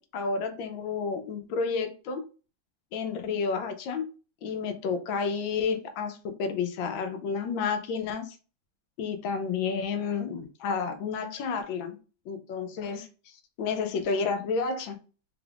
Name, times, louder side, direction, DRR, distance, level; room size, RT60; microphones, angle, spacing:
voice 1, 0.0-2.2 2.9-4.0 4.4-8.4 9.0-12.0 12.3-15.0, left 5 dB, 80° left, 7 dB, 1.4 m, -31 dB
4.3 x 2.4 x 3.3 m, 0.35 s
omnidirectional pair, 2.1 m